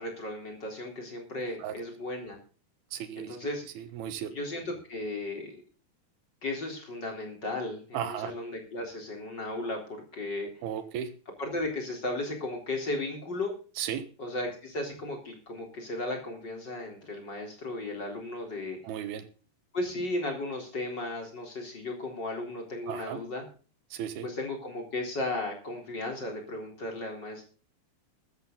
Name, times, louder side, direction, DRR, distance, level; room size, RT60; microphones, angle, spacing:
voice 1, 0.0-2.4 3.2-3.6 4.3-5.6 6.4-10.5 11.4-13.5 14.2-18.8 19.7-23.5 24.2-27.4, left 2 dB, 25° left, 2 dB, 4.0 m, -35 dB
voice 2, 2.9-3.4 3.8-4.3 7.9-8.3 10.6-11.1 13.8-14.1 18.8-19.3 22.9-23.2 23.9-24.3, right 9 dB, 75° right, 11 dB, 3.2 m, -35 dB
14.0 x 13.5 x 4.0 m, 0.38 s
omnidirectional pair, 4.7 m